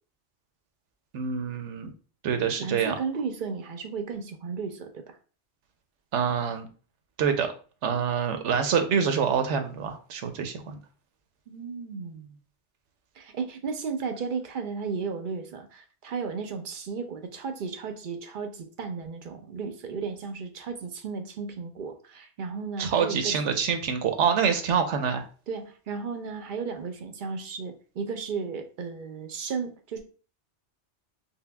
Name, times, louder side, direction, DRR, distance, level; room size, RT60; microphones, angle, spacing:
voice 1, 1.1-1.9 2.2-2.9 6.1-6.7 7.2-7.5 7.8-10.8 22.8-25.2, right 7 dB, 80° right, 7 dB, 0.9 m, -26 dB
voice 2, 2.6-5.2 11.5-12.4 13.2-23.4 25.5-30.0, right 5 dB, 55° right, 6 dB, 0.6 m, -34 dB
5.4 x 2.1 x 2.2 m, 0.38 s
omnidirectional pair, 1.2 m